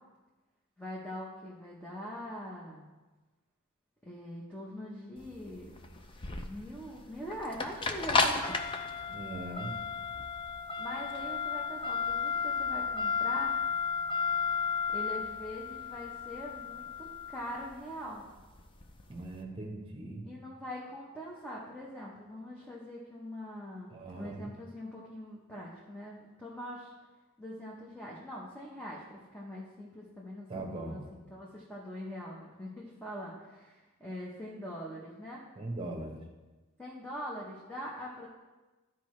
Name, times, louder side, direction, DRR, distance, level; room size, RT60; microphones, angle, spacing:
voice 1, 0.8-2.8 4.0-5.7 6.4-8.6 10.8-13.5 14.9-18.2 20.2-26.9 27.4-35.4 36.8-38.3, equal, 5° left, -5 dB, 0.8 m, -43 dB
sound 1, 5.2-19.3, left 5 dB, 25° left, 0.5 m, -33 dB
voice 2, 9.1-9.7 19.1-20.2 23.9-24.5 30.5-31.1 35.6-36.2, right 2 dB, 25° right, 1 dB, 1.1 m, -40 dB
12.5 x 4.7 x 3.2 m, 1.2 s
head